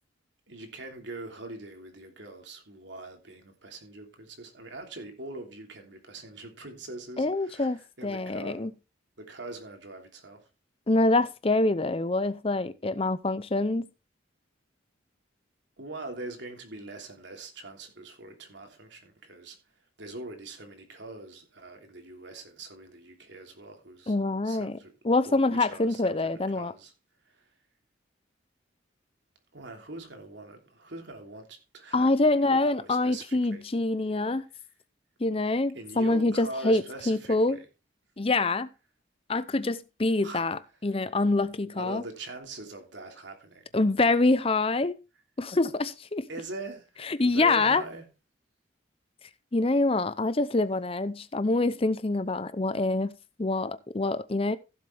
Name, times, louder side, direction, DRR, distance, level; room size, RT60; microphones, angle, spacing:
voice 1, 0.5-8.7 9.2-10.5 15.8-19.6 20.0-24.2 24.4-24.9 25.2-26.9 27.3-27.4 29.5-33.6 35.7-37.6 40.2-40.4 41.7-43.7 46.3-48.0, right 2 dB, 70° right, 3.1 m, -42 dB
voice 2, 7.2-8.7 10.9-13.9 24.1-24.8 25.0-26.7 31.9-34.4 35.2-37.6 38.2-38.7 39.3-42.0 43.7-45.0 45.4-46.3 47.1-47.8 49.5-53.1 53.4-54.6, left 2 dB, 30° left, 0.6 m, -25 dB
15.5 x 7.7 x 3.4 m
head